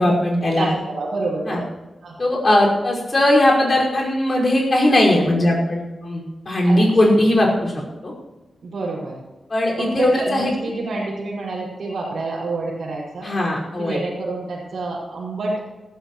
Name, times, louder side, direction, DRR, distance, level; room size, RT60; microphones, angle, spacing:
voice 1, 0.0-0.7 1.5-1.6 2.2-7.7 8.0-8.1 9.5-10.5 13.2-14.0, left 1 dB, 35° left, -3 dB, 5.3 m, -18 dB
voice 2, 0.6-1.7 2.0-2.2 6.6-6.8 8.6-9.1 9.8-13.3 13.8-15.5, right 3 dB, 65° right, -8 dB, 5.5 m, -27 dB
21.5 x 15.5 x 3.1 m, 1.1 s
wide cardioid pair, 170°, 0 cm